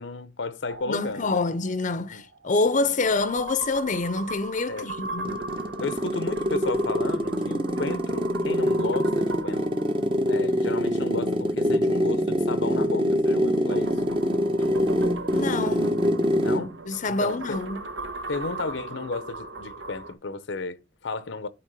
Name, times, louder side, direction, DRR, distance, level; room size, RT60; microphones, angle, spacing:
voice 1, 0.0-1.4 2.1-2.2 4.7-4.9 5.8-9.8 10.3-13.9 16.4-16.8 17.1-17.6 18.3-21.5, left 3 dB, 75° left, 0.7 m, -33 dB
sound 1, 0.7-11.3 13.2-20.1, right 3 dB, 75° right, 1.1 m, -38 dB
voice 2, 0.9-5.4 6.5-6.6 15.3-16.0 16.9-17.8, left 3 dB, 45° left, 0.6 m, -26 dB
sound 2, 5.0-16.7, equal, 30° right, 0.9 m, -24 dB
8.6 x 3.5 x 6.7 m
head